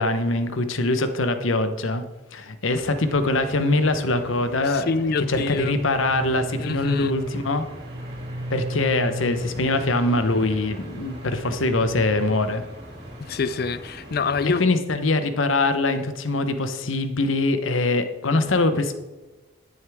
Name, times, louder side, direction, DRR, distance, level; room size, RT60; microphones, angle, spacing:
voice 1, 0.0-2.0 2.3-4.9 5.3-7.6 8.5-12.6 14.6-18.9, left 2 dB, 80° left, 9 dB, 0.9 m, -23 dB
sound 1, 2.8-14.6, equal, 50° right, 2.7 m, -42 dB
voice 2, 4.6-5.7 6.6-7.1 13.2-14.6, left 4 dB, 50° left, 15 dB, 0.4 m, -26 dB
sound 2, 5.3-13.2, equal, 20° right, 0.4 m, -35 dB
11.0 x 9.4 x 3.6 m, 1.1 s
head